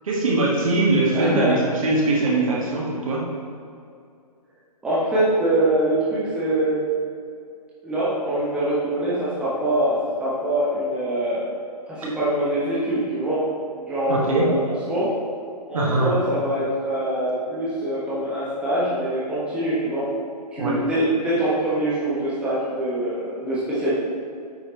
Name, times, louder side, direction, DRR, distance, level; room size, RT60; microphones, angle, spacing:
voice 1, 0.0-3.2 14.1-14.5 15.7-16.1 20.6-20.8, right 2 dB, 55° right, -4 dB, 1.7 m, -21 dB
voice 2, 1.1-1.6 4.8-6.8 7.8-11.4 11.9-13.5 13.9-15.1 15.6-20.1 20.5-23.9, right 1 dB, 5° right, -10 dB, 1.2 m, -24 dB
8.9 x 4.9 x 3.1 m, 2.4 s
figure-of-eight pair, 130°, 21 cm